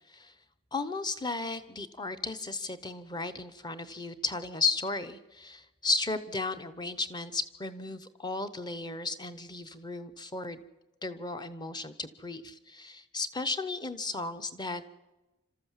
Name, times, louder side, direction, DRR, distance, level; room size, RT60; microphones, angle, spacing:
voice 1, 0.7-10.6 11.0-14.8, left 3 dB, 20° left, 11 dB, 0.9 m, -34 dB
27.0 x 13.5 x 7.4 m, 1.1 s
head